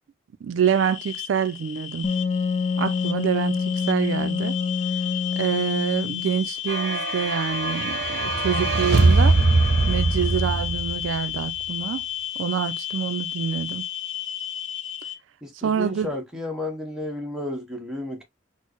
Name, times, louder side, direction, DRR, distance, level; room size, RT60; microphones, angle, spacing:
voice 1, 0.4-2.1 2.8-4.6 5.4-9.4 9.9-12.0 12.4-13.8 15.6-16.1, right 8 dB, 75° right, 0.3 m, -26 dB
sound 1, 0.6-15.2, left 11 dB, 65° left, 0.7 m, -33 dB
Wind instrument woodwind instrument, 2.0-6.5, left 5 dB, 30° left, 0.3 m, -26 dB
sound 2, 6.7-11.3, right 3 dB, 55° right, 0.7 m, -21 dB
voice 2, 15.4-18.2, left 1 dB, 5° right, 0.9 m, -32 dB
4.4 x 2.0 x 2.9 m
head